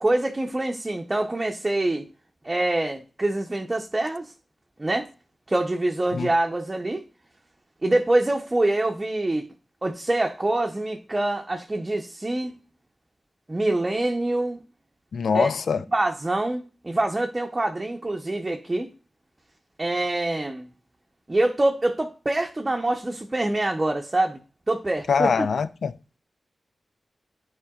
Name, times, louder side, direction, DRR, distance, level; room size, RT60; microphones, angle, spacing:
voice 1, 0.0-2.0 2.4-4.2 4.8-5.1 5.5-7.0 7.8-9.4 9.8-12.5 13.5-14.6 15.3-15.5 15.9-18.9 19.8-20.7 21.3-24.4 24.7-25.5, right 2 dB, 30° right, 0.7 m, -25 dB
voice 2, 15.1-15.8 25.1-25.9, left 5 dB, 85° left, 0.3 m, -23 dB
10.5 x 4.4 x 2.3 m
cardioid pair, 60°, 0 cm